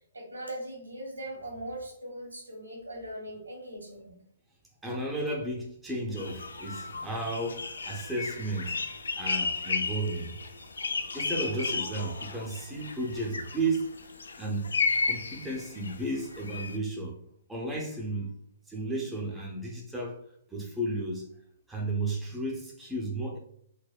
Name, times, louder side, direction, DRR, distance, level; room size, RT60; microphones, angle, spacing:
voice 1, 0.1-4.2, right 1 dB, 90° right, 0 dB, 1.3 m, -40 dB
voice 2, 4.8-8.8 9.2-10.3 11.1-13.9 14.4-14.7 15.0-17.2 17.5-18.3 18.7-20.2 20.5-21.3 21.7-23.4, right 2 dB, 5° right, -3 dB, 0.6 m, -33 dB
sound 1, 6.2-16.8, left 4 dB, 75° left, 0.3 m, -34 dB
4.0 x 2.1 x 2.2 m, 0.69 s
figure-of-eight pair, 125°, 0 cm